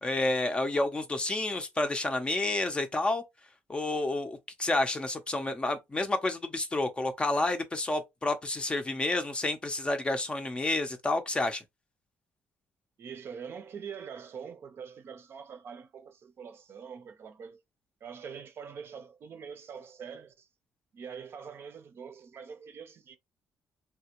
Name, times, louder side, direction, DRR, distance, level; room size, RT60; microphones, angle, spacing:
voice 1, 0.0-3.2 3.7-11.6, left 2 dB, 20° left, 0.5 m, -30 dB
voice 2, 13.0-17.6 18.0-20.5 20.9-23.2, right 6 dB, 50° right, 0.6 m, -44 dB
3.3 x 2.1 x 2.9 m
cardioid pair, 120°, 5 cm